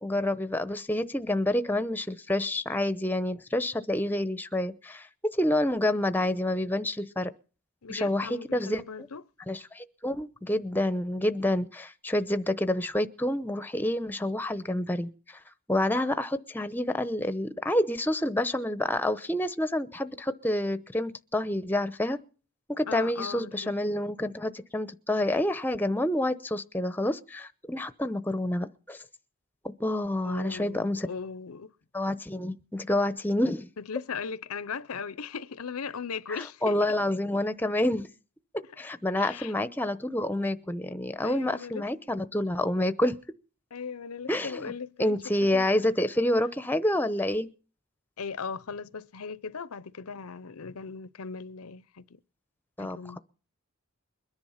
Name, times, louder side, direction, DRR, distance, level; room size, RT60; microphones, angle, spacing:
voice 1, 0.0-5.1 5.3-7.3 7.9-8.8 9.5-15.4 15.7-22.2 22.7-29.0 29.8-31.1 31.9-33.7 36.3-38.1 38.8-43.2 44.3-44.7 45.0-47.5 52.8-53.2, left 1 dB, 10° left, 0.8 m, -28 dB
voice 2, 7.8-9.2 22.9-23.7 30.2-31.7 33.8-36.8 39.2-39.5 41.2-41.9 43.7-45.9 48.2-52.0 52.8-53.2, left 5 dB, 85° left, 0.7 m, -38 dB
22.0 x 10.5 x 5.7 m
head